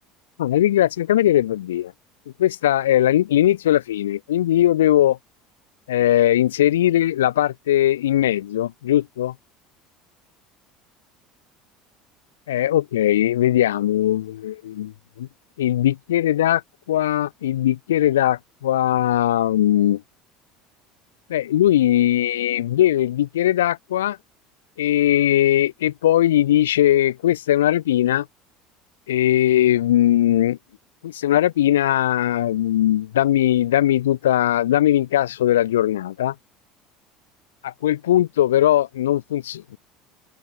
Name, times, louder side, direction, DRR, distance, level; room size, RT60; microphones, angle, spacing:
voice 1, 0.4-1.9 2.4-5.2 5.9-9.3 12.5-15.3 15.6-16.6 16.9-20.0 21.3-24.2 24.8-28.3 29.1-30.6 31.0-36.3 37.6-39.8, left 12 dB, 80° left, 1.2 m, -19 dB
open air
hypercardioid pair, 70°, 0 cm